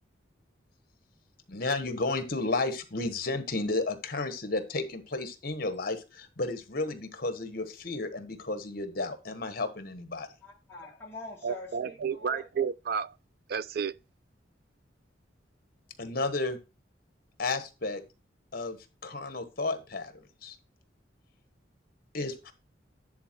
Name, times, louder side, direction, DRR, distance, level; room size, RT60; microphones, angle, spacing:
voice 1, 1.5-10.3 16.0-16.6 17.4-18.0 18.5-20.1 20.4-20.6 22.1-22.5, left 3 dB, 55° left, 1.3 m, -32 dB
voice 2, 10.4-12.4, left 2 dB, 15° left, 1.6 m, -44 dB
voice 3, 11.4-13.1 13.5-14.0, right 6 dB, 55° right, 0.4 m, -31 dB
10.5 x 4.2 x 4.5 m
head